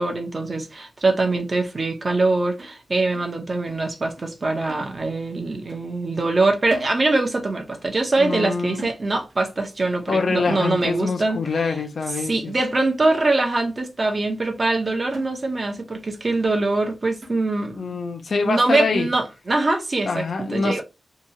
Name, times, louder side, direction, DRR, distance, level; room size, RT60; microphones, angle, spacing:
voice 1, 0.0-11.8 12.2-18.0 18.4-20.8, right 2 dB, 40° right, 0.7 m, -23 dB
sound 1, 2.6-3.9 4.2-4.4 4.7-5.4 5.7-5.9 6.2-7.5 7.8-8.0 8.3-9.5 9.8-10.0 10.3-10.5 10.8-11.4 11.9-12.0 12.5-12.6 13.0-13.7 14.1-14.2 14.6-14.8 15.1-15.9 16.2-16.3 16.7-16.8 17.2-17.8 18.3-18.4 18.7-18.9, right 1 dB, 70° right, 1.1 m, -45 dB
voice 2, 8.2-8.9 10.1-12.5 17.7-19.1 20.0-20.8, left 4 dB, 60° left, 0.5 m, -25 dB
2.8 x 2.3 x 2.7 m
wide cardioid pair, 100°, 0 cm